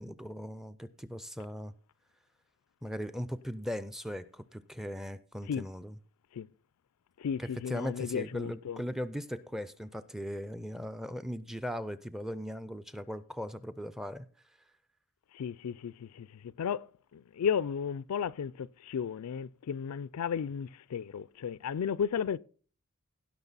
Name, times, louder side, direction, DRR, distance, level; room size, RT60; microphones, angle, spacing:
voice 1, 0.0-1.7 2.8-6.0 7.4-14.3, equal, ahead, 0.4 m, -38 dB
voice 2, 7.2-8.8 15.3-22.4, left 7 dB, 85° left, 0.4 m, -34 dB
16.5 x 6.1 x 4.0 m
head